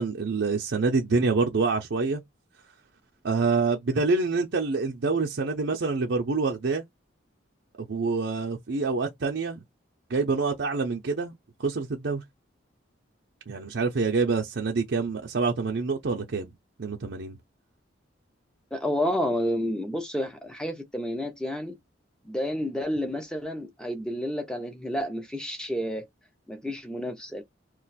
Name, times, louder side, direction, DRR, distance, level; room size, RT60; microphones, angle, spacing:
voice 1, 0.0-2.2 3.2-6.8 7.8-9.6 10.1-11.3 11.6-12.2 13.5-16.5 16.8-17.4, right 4 dB, 65° right, 0.5 m, -26 dB
voice 2, 18.7-21.7 22.2-26.1 26.5-27.4, equal, 5° left, 0.6 m, -30 dB
2.5 x 2.2 x 4.0 m
head